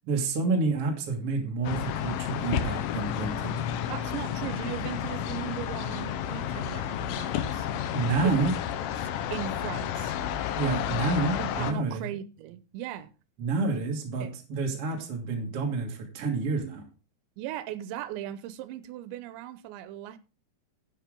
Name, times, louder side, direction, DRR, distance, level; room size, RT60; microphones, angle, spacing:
voice 1, 0.1-3.5 7.9-8.5 10.6-12.0 13.4-16.8, right 3 dB, 50° right, 1.9 m, -29 dB
sound 1, 1.6-11.7, left 9 dB, 85° left, 2.0 m, -31 dB
voice 2, 3.9-7.7 8.2-8.4 9.0-10.1 11.4-13.1 14.2-14.4 17.4-20.2, right 12 dB, 85° right, 3.0 m, -38 dB
11.5 x 9.2 x 3.7 m
omnidirectional pair, 5.2 m